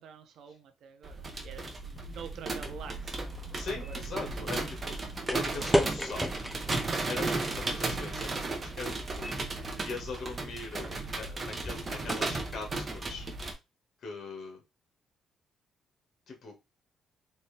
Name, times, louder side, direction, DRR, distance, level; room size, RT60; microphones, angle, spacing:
voice 1, 0.0-3.3 3.8-4.3, right 7 dB, 75° right, 7 dB, 0.7 m, -47 dB
sound 1, 1.0-13.5, right 3 dB, 35° right, 1.1 m, -35 dB
sound 2, 2.6-13.6, equal, ahead, 0.8 m, -37 dB
voice 2, 3.5-5.0 5.3-6.4 7.1-9.3 9.8-13.3 14.0-14.6 16.3-16.6, left 4 dB, 55° left, 2 dB, 1.5 m, -41 dB
4.3 x 2.7 x 3.3 m, 0.24 s
cardioid pair, 90°, 0 cm